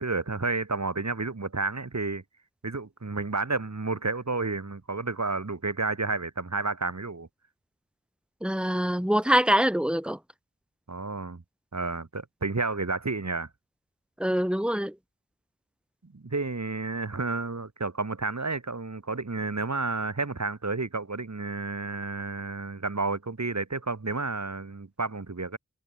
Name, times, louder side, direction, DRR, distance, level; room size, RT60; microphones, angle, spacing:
voice 1, 0.0-2.2 2.6-7.3 10.9-11.4 11.7-13.5 16.0-25.6, right 3 dB, 60° right, 4.5 m, -31 dB
voice 2, 8.4-10.2 14.2-14.9, equal, 5° right, 3.3 m, -24 dB
wide cardioid pair, 45°, 31 cm